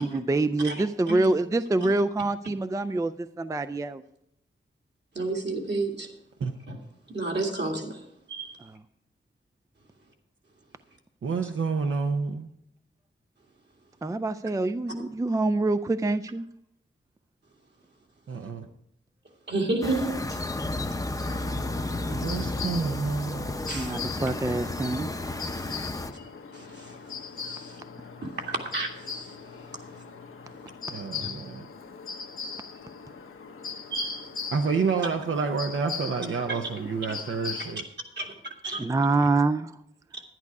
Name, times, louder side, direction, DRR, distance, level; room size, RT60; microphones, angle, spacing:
voice 1, 0.0-4.0 8.6-8.8 14.0-16.5 23.7-25.1 38.8-39.8, right 2 dB, 15° right, 11 dB, 0.3 m, -26 dB
voice 2, 0.6-1.2 1.8-1.9 5.1-6.1 6.7-6.8 7.1-8.0 8.3-8.5 19.5-20.4 23.7-24.0 25.7-25.8 26.5-26.9 27.5-27.8 28.2-29.2 33.9-34.2 36.5-36.6 38.2-38.3 38.6-38.8, right 2 dB, 55° right, 1 dB, 2.2 m, -31 dB
voice 3, 11.2-12.5 18.3-18.7 22.1-23.5 30.9-31.7 34.5-37.8, right 5 dB, 70° right, 4 dB, 0.8 m, -29 dB
sound 1, 19.8-26.1, left 2 dB, 15° left, 0.7 m, -32 dB
sound 2, 21.2-37.7, left 6 dB, 85° left, 1.0 m, -40 dB
11.0 x 10.5 x 4.8 m, 0.76 s
wide cardioid pair, 130°, 21 cm